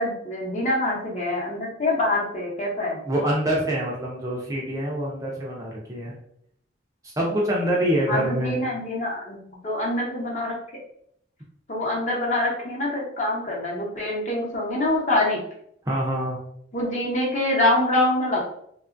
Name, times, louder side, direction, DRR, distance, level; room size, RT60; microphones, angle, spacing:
voice 1, 0.0-3.0 8.1-10.5 11.7-15.4 16.7-18.4, left 1 dB, 40° left, -3 dB, 0.8 m, -25 dB
voice 2, 3.1-6.1 7.0-8.6 15.9-16.4, right 1 dB, 20° right, -3 dB, 0.4 m, -25 dB
2.8 x 2.3 x 2.5 m, 0.71 s
head